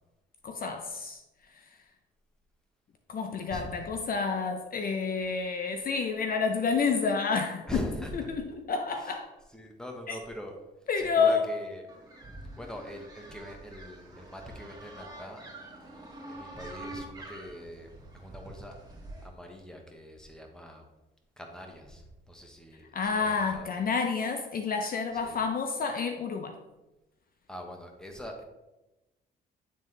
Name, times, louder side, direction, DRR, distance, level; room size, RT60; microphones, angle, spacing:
voice 1, 0.4-1.8 3.1-7.7 8.1-9.3 10.1-10.2 10.9-11.4 22.9-26.6, left 5 dB, 45° left, 5 dB, 0.6 m, -29 dB
voice 2, 3.5-3.9 7.7-8.4 9.0-9.1 9.5-10.5 11.0-11.8 12.6-15.5 15.8-15.9 16.3-18.8 19.2-20.8 21.4-23.7 25.2-25.4 27.5-28.4, equal, 5° left, 2 dB, 1.2 m, -42 dB
sound 1, 11.9-19.3, right 1 dB, 20° right, 2.0 m, -46 dB
9.2 x 3.7 x 3.3 m, 1.0 s
cardioid pair, 90°, 20 cm